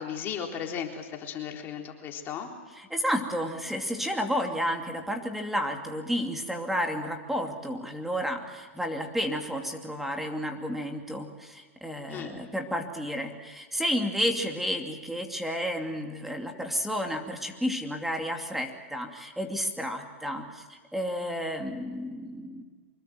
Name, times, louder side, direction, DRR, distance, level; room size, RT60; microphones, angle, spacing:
voice 1, 0.0-2.5 12.1-12.3, left 8 dB, 30° left, 2 dB, 3.8 m, -35 dB
voice 2, 2.8-22.6, equal, 5° right, 4 dB, 2.7 m, -31 dB
25.0 x 21.5 x 7.8 m, 1.4 s
hypercardioid pair, 135°, 7 cm